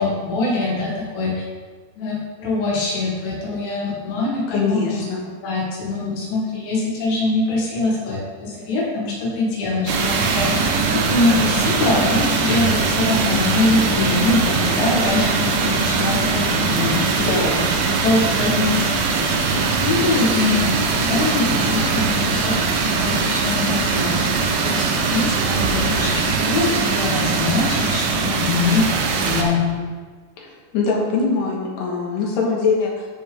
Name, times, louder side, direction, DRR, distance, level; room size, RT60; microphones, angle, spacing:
voice 1, 0.0-1.4 2.0-5.1 5.4-17.2 17.8-22.6 22.9-29.9, left 3 dB, 90° left, -5 dB, 4.5 m, -23 dB
voice 2, 4.5-5.2 17.2-17.7 30.4-33.1, left 4 dB, 75° left, -2 dB, 3.5 m, -22 dB
sound 1, 9.9-29.4, right 4 dB, 90° right, 1.9 m, -21 dB
14.0 x 5.2 x 3.6 m, 1.5 s
omnidirectional pair, 5.2 m